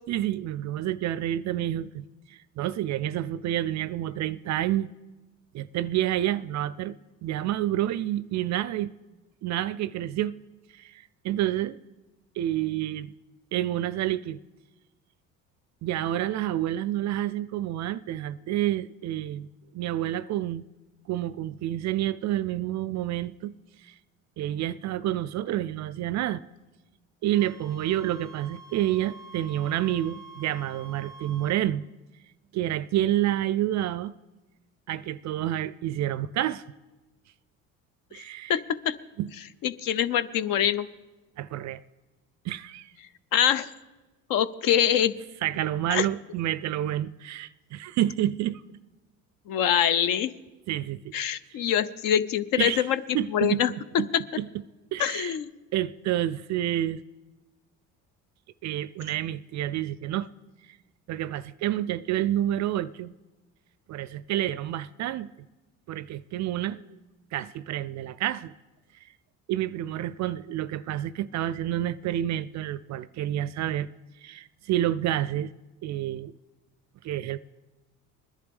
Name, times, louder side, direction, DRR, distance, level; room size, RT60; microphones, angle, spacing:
voice 1, 0.1-4.9 5.5-7.0 7.2-8.9 9.4-10.3 10.7-11.8 12.4-13.1 13.5-14.4 15.8-19.5 19.7-20.6 21.1-23.5 23.8-23.9 24.4-26.4 27.2-31.8 32.5-34.1 34.9-36.6 38.1-38.6 39.2-39.3 41.4-41.8 42.4-42.9 45.4-48.8 50.7-51.1 51.6-51.7 52.6-52.9 53.1-54.1 54.3-54.5 54.9-55.4 55.7-57.0 58.6-60.3 61.1-63.1 63.9-65.3 65.9-67.0 67.3-68.5 69.5-73.9 74.2-75.5 75.8-76.3 77.0-77.5, right 13 dB, 45° right, 0.4 m, -29 dB
Wind instrument woodwind instrument, 27.3-31.6, right 4 dB, ahead, 1.3 m, -47 dB
voice 2, 38.5-38.9 39.6-40.9 43.3-43.7 44.3-45.1 45.9-46.1 49.5-50.3 51.1-53.0 53.3-53.7 54.1-54.2 55.0-55.5, left 10 dB, 50° left, 0.7 m, -24 dB
20.5 x 11.0 x 3.5 m
hypercardioid pair, 65°, 42 cm